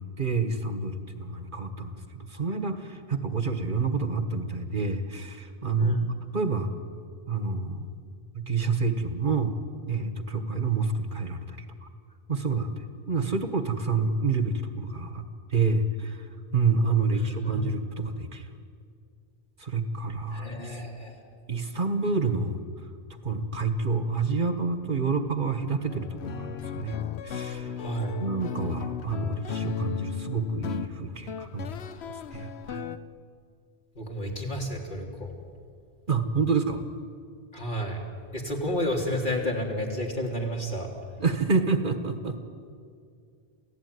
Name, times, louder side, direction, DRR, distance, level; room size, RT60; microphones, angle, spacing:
voice 1, 0.0-6.7 7.3-7.9 8.3-9.5 9.9-11.9 12.3-16.3 16.5-18.5 19.6-20.8 21.5-22.6 23.2-27.0 27.2-27.7 28.2-31.7 32.3-32.9 36.1-36.8 41.2-42.4, right 4 dB, 50° right, 8 dB, 1.6 m, -28 dB
voice 2, 5.8-6.2 17.1-17.6 20.3-21.3 27.8-28.2 34.0-35.3 37.5-38.0 38.3-40.9, equal, 50° left, -1 dB, 3.7 m, -31 dB
sound 1, 25.9-33.0, left 8 dB, 80° left, 1.1 m, -36 dB
28.0 x 16.0 x 9.6 m, 2.3 s
omnidirectional pair, 1.1 m